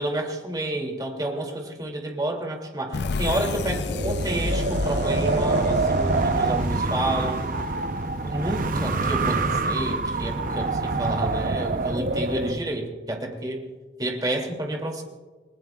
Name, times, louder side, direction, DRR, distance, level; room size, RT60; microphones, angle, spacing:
voice 1, 0.0-7.5 7.9-13.6 14.0-15.0, right 1 dB, 20° right, 2 dB, 2.7 m, -30 dB
sound 1, 2.9-8.4, left 3 dB, 65° left, 0.5 m, -32 dB
Wind, 3.9-12.6, right 3 dB, 45° right, 0.8 m, -25 dB
29.5 x 20.0 x 2.4 m, 1.3 s
head